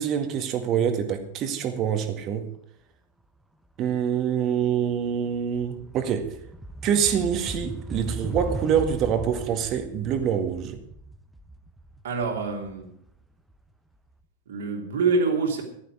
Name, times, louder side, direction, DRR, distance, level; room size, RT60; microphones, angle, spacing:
voice 1, 0.0-2.5 3.8-6.3 6.8-10.8, right 8 dB, 35° right, 1.9 m, -25 dB
sound 1, 4.3-4.4 4.6-13.5, right 1 dB, 5° right, 1.1 m, -37 dB
voice 2, 12.0-12.9 14.5-15.6, right 4 dB, 60° right, 3.1 m, -25 dB
15.0 x 12.0 x 4.9 m
figure-of-eight pair, 90°, 0 cm